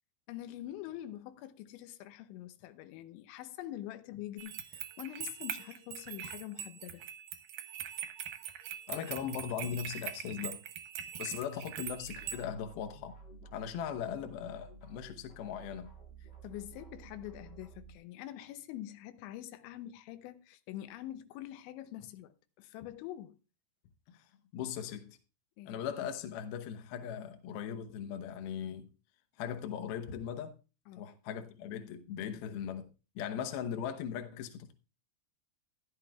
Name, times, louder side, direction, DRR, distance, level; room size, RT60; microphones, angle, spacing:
voice 1, 0.3-7.0 16.2-23.4 25.6-25.8 30.9-31.1, left 13 dB, 90° left, 3.2 m, -45 dB
sound 1, 4.4-12.4, right 10 dB, 75° right, 2.1 m, -42 dB
voice 2, 8.9-10.6 11.2-13.2 13.5-15.9 24.1-24.2 24.5-25.2 25.7-28.9 29.4-30.6 31.0-32.9 33.2-34.7, left 8 dB, 70° left, 2.5 m, -39 dB
sound 2, 11.8-18.0, right 3 dB, 25° left, 1.4 m, -53 dB
14.5 x 12.0 x 2.3 m
omnidirectional pair, 5.1 m